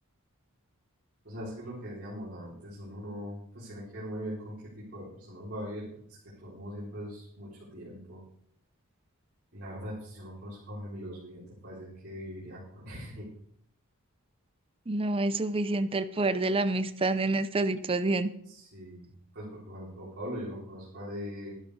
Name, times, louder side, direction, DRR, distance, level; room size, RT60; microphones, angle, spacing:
voice 1, 1.2-8.2 9.5-13.3 18.5-19.1 19.3-21.5, equal, 50° right, -7 dB, 3.9 m, -41 dB
voice 2, 14.9-18.3, right 2 dB, 25° right, 11 dB, 0.6 m, -28 dB
12.0 x 11.5 x 4.8 m, 0.69 s
head